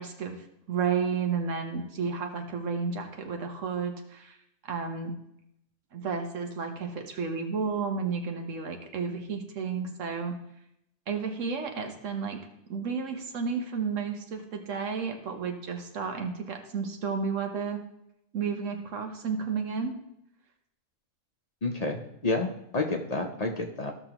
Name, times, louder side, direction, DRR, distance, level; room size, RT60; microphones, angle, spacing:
voice 1, 0.0-4.4 4.7-5.1 5.9-10.4 11.1-12.4 12.7-17.8 18.3-20.0, right 5 dB, 90° right, 4 dB, 1.4 m, -32 dB
voice 2, 21.6-23.9, left 3 dB, 40° left, 3 dB, 0.7 m, -30 dB
14.0 x 6.0 x 2.9 m, 0.79 s
omnidirectional pair, 1.3 m